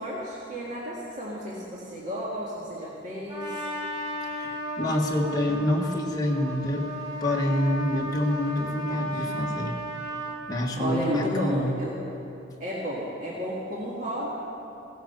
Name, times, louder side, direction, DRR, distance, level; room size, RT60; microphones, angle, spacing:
voice 1, 0.0-3.7 9.1-9.2 10.8-12.0 12.6-14.3, equal, 40° right, -6 dB, 1.8 m, -32 dB
Trumpet, 3.3-10.4, right 1 dB, 20° right, 1.6 m, -34 dB
voice 2, 4.3-6.9 7.2-9.8 10.5-11.8, left 1 dB, 20° left, 0 dB, 1.4 m, -27 dB
17.0 x 10.5 x 6.6 m, 2.9 s
head